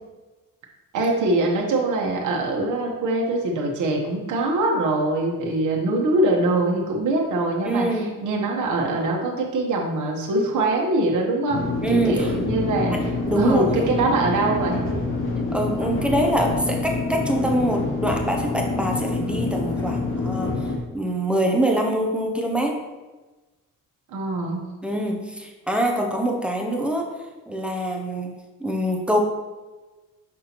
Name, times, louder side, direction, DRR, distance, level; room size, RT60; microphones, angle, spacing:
voice 1, 0.9-7.9 8.2-13.1 13.4-14.8 24.1-24.6, right 2 dB, 60° right, -1 dB, 1.1 m, -23 dB
voice 2, 7.6-8.2 11.8-12.3 12.9-13.9 15.5-20.5 20.9-22.8 24.8-27.1 27.5-28.3 28.6-29.2, right 1 dB, 5° right, 1 dB, 0.5 m, -24 dB
sound 1, 11.5-20.8, left 3 dB, 35° left, 0.9 m, -26 dB
6.5 x 5.6 x 2.9 m, 1.2 s
cardioid pair, 165°, 34 cm